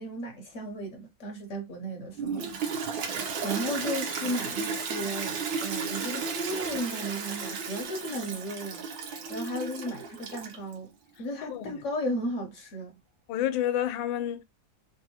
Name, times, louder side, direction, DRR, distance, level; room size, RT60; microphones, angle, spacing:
voice 1, 0.0-2.9 3.4-8.8 9.3-13.0, equal, 60° left, 0.8 m, -35 dB
Toilet flush, 2.2-10.7, right 5 dB, 80° right, 1.5 m, -34 dB
voice 2, 13.3-14.4, left 11 dB, 85° left, 1.3 m, -29 dB
3.5 x 2.4 x 2.7 m
omnidirectional pair, 2.1 m